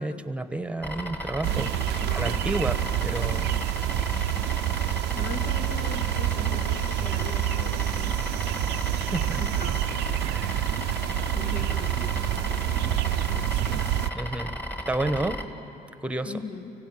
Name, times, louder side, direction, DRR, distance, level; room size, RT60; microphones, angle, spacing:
voice 1, 0.0-1.7 2.1-3.6 8.9-9.4 10.2-10.9 14.1-14.5 14.9-15.5 16.0-16.3, right 2 dB, 5° right, 10 dB, 1.0 m, -31 dB
sound 1, 0.8-15.4, equal, 10° left, 1.5 m, -34 dB
sound 2, 1.4-14.1, right 15 dB, 90° right, 0.6 m, -27 dB
voice 2, 2.0-2.5 5.1-8.6 9.4-9.9 11.3-13.0 13.3-13.9 16.2-16.7, left 4 dB, 80° left, 3 dB, 2.4 m, -40 dB
25.5 x 16.0 x 9.1 m, 2.9 s
cardioid pair, 110°, 17 cm